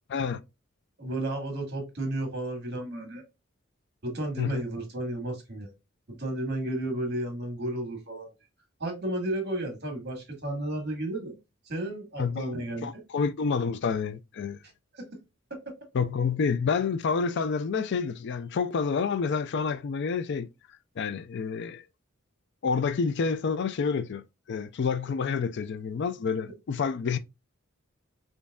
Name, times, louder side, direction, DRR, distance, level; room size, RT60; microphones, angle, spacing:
voice 1, 0.1-0.4 4.4-4.6 12.2-12.5 12.8-14.6 15.9-20.5 21.0-21.8 22.6-27.2, left 5 dB, 55° left, 0.4 m, -28 dB
voice 2, 1.0-3.2 4.0-5.7 6.1-8.3 8.8-11.4 11.7-13.0 14.9-15.1, right 1 dB, 55° right, 1.7 m, -33 dB
5.1 x 2.6 x 2.3 m
head